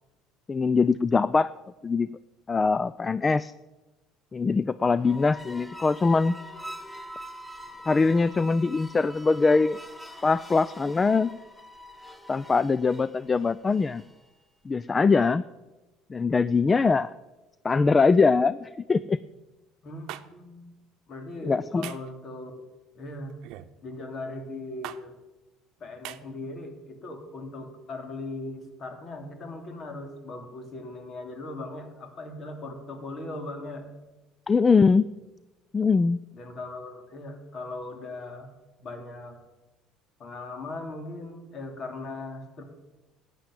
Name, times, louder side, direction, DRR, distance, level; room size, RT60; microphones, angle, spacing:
voice 1, 0.5-1.5 1.8-2.1 2.5-3.5 4.3-6.3 7.9-9.8 10.2-11.3 12.3-14.0 14.7-15.4 16.1-17.1 17.6-19.2 21.4-21.8 34.5-35.1 35.7-36.2, left 4 dB, 25° left, 17 dB, 0.4 m, -22 dB
sound 1, 4.9-14.3, left 1 dB, 5° left, 1.6 m, -44 dB
voice 2, 19.8-20.8 21.1-22.6 22.9-23.3 23.8-25.2 25.8-33.8 36.3-38.5 38.8-39.4 40.2-42.6, left 2 dB, 45° left, 5 dB, 3.2 m, -39 dB
sound 2, 20.1-20.2 21.8-22.1 23.4-23.7 24.8-25.0 26.0-26.2, right 14 dB, 70° right, 0.8 m, -39 dB
13.0 x 9.2 x 8.7 m, 1.1 s
supercardioid pair, 90°, 0 cm